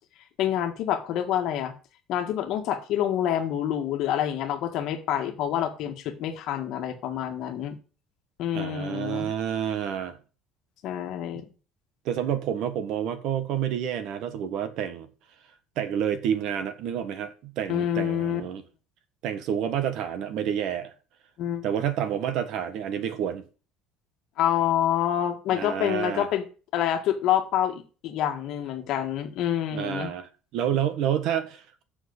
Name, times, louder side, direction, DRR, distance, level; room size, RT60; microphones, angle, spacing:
voice 1, 0.4-1.7 2.1-7.7 8.4-9.3 10.8-11.4 17.7-18.4 21.4-21.6 24.4-26.4 26.7-30.1, left 10 dB, 45° left, 1.7 m, -27 dB
voice 2, 8.5-10.2 12.0-15.1 15.8-18.6 19.2-20.9 21.6-23.4 25.5-26.3 29.7-31.8, right 9 dB, 50° right, 1.4 m, -29 dB
7.6 x 6.4 x 8.0 m
cardioid pair, 175°, 0 cm